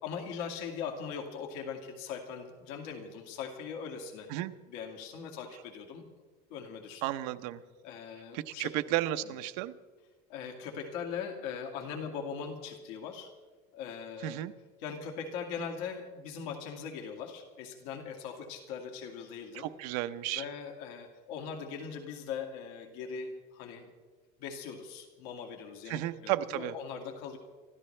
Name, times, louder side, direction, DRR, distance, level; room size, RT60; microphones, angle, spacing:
voice 1, 0.0-4.3 4.7-6.1 6.5-7.0 7.8-8.7 9.2-9.4 10.3-13.3 13.7-14.4 14.8-19.7 20.3-23.9 24.4-27.4, left 6 dB, 80° left, 2 dB, 2.2 m, -40 dB
voice 2, 7.0-7.6 8.3-9.7 14.2-14.5 19.5-20.4 25.9-26.7, right 14 dB, 70° right, 10 dB, 0.8 m, -33 dB
26.0 x 13.5 x 3.3 m, 1.4 s
cardioid pair, 160°, 21 cm